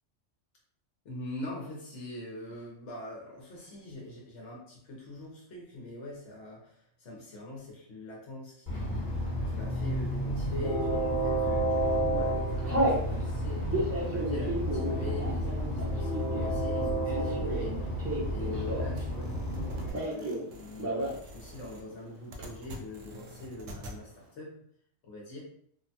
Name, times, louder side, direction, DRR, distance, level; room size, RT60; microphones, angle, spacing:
voice 1, 1.0-13.7 14.1-18.0 18.3-20.9 21.2-24.5 25.0-25.4, left 1 dB, 70° left, -3 dB, 1.0 m, -43 dB
Train, 8.7-19.9, equal, 40° left, 1.1 m, -31 dB
Telephone, 10.5-11.0 11.6-11.9 12.1-13.0 13.6-19.1 19.3-20.4 20.7-21.2 21.5-21.6 21.8-22.4, right 1 dB, 15° right, 0.6 m, -33 dB
sound 1, 19.0-24.0, equal, 85° right, 0.9 m, -47 dB
3.1 x 2.1 x 2.7 m, 0.66 s
omnidirectional pair, 1.3 m